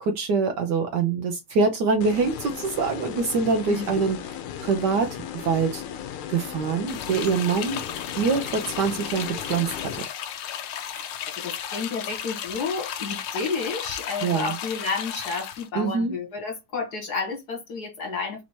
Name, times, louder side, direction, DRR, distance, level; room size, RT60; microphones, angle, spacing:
voice 1, 0.0-4.2 4.6-5.8 6.3-7.8 8.2-9.9 14.2-14.5 15.7-16.1, right 4 dB, 70° right, 1.1 m, -24 dB
sound 1, 2.0-10.0, left 9 dB, 85° left, 1.5 m, -36 dB
voice 2, 3.7-4.1 10.9-11.0 11.4-18.4, left 4 dB, 50° left, 2.0 m, -31 dB
sound 2, 6.9-15.7, left 9 dB, 70° left, 1.3 m, -34 dB
4.2 x 2.7 x 4.4 m
omnidirectional pair, 2.3 m